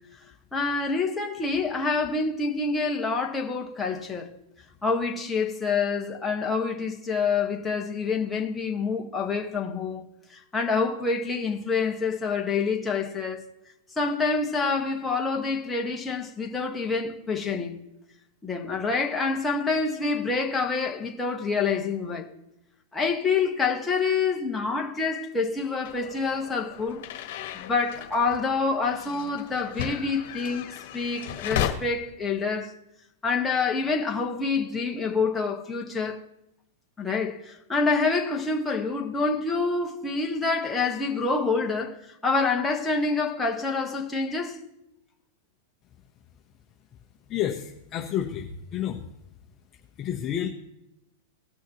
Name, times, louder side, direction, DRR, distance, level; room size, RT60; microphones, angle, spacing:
voice 1, 0.5-4.3 4.8-10.0 10.5-13.4 14.0-17.8 18.4-22.3 22.9-27.0 27.5-32.7 33.2-36.2 37.0-42.0 42.2-44.6, left 4 dB, 10° left, 1.5 m, -27 dB
sound 1, 25.8-31.7, left 11 dB, 60° left, 1.5 m, -35 dB
voice 2, 47.3-49.0 50.0-50.5, left 10 dB, 30° left, 0.9 m, -30 dB
18.5 x 6.3 x 3.0 m
hypercardioid pair, 130°, 0 cm